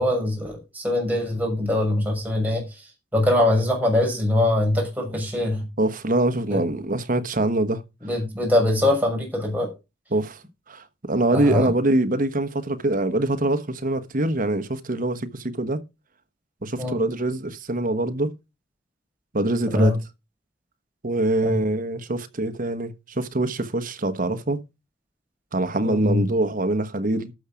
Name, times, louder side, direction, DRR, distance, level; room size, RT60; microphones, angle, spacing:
voice 1, 0.0-2.8 3.1-5.7 6.5-6.6 8.0-9.7 11.3-11.7 16.8-17.0 19.7-20.0 21.4-21.6 25.8-26.2, left 1 dB, 10° right, 6.3 m, -23 dB
voice 2, 5.8-7.8 10.1-15.8 16.6-18.3 19.3-19.9 21.0-24.6 25.5-27.3, right 2 dB, 45° right, 1.2 m, -24 dB
12.5 x 7.1 x 5.0 m
head